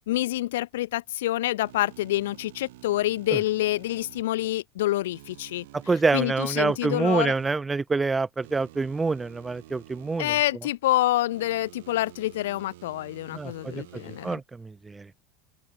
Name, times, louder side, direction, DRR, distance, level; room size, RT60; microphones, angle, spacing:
voice 1, 0.1-7.3 10.2-14.4, left 15 dB, 70° left, 1.0 m, -27 dB
sound 1, 1.6-4.2 5.1-7.5 8.4-10.5 11.3-14.4, right 18 dB, 70° right, 7.7 m, -50 dB
voice 2, 5.9-10.3 13.3-13.5 14.2-14.4, right 4 dB, 15° right, 0.3 m, -25 dB
open air
hypercardioid pair, 75°, 0 cm